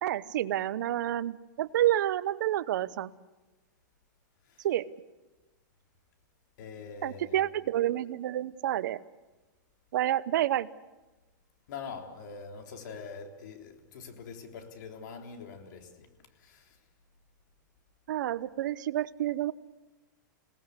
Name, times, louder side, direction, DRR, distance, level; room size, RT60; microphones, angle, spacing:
voice 1, 0.0-3.1 4.6-4.9 7.0-9.0 9.9-10.7 18.1-19.5, right 13 dB, 70° right, 0.9 m, -29 dB
voice 2, 6.6-7.4 11.7-16.1 16.4-16.8, left 5 dB, 65° left, 3.6 m, -44 dB
27.5 x 18.5 x 8.2 m
hypercardioid pair, 140°, 11 cm